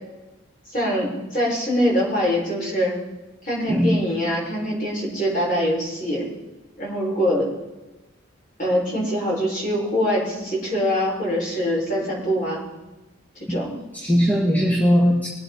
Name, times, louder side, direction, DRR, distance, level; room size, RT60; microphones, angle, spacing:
voice 1, 0.7-3.0 3.4-6.3 6.8-7.5 8.6-12.6 13.5-13.7, equal, 40° left, -4 dB, 5.9 m, -23 dB
voice 2, 3.7-4.0 13.5-13.6 13.9-15.3, equal, 10° left, -4 dB, 1.7 m, -19 dB
22.5 x 8.4 x 4.2 m, 1.1 s
head